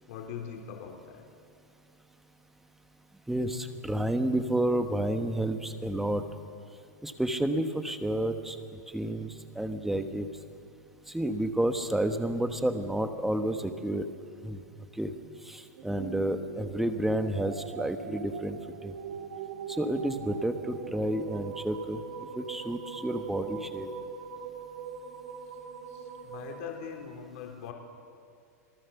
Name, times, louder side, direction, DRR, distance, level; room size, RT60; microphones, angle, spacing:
voice 1, 0.1-1.2 25.9-27.7, left 8 dB, 60° left, 2 dB, 3.6 m, -42 dB
voice 2, 3.3-6.2 7.0-8.6 8.9-10.3 11.1-14.0 14.4-14.6 15.0-15.1 15.4-18.9 19.7-22.0 22.4-23.9, right 1 dB, 5° right, 7 dB, 1.1 m, -30 dB
sound 1, 15.8-27.2, right 7 dB, 70° right, 2.8 m, -41 dB
26.5 x 18.5 x 7.0 m, 2.3 s
supercardioid pair, 160°, 9 cm